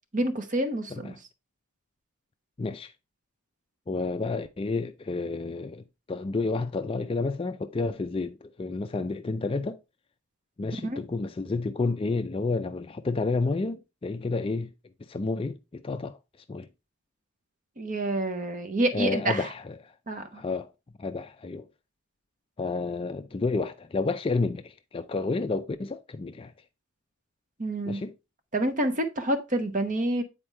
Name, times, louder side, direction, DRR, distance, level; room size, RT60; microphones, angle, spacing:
voice 1, 0.1-1.2 10.8-11.0 17.8-19.5 20.1-20.4 27.6-28.0 28.5-30.2, right 1 dB, 35° right, 0.9 m, -28 dB
voice 2, 2.6-2.9 3.9-9.8 10.6-14.7 15.1-16.2 16.5-16.7 18.9-19.9 20.3-20.7 21.0-21.7 22.6-26.5 27.9-28.1, left 3 dB, 25° left, 0.3 m, -30 dB
8.7 x 4.4 x 3.2 m
head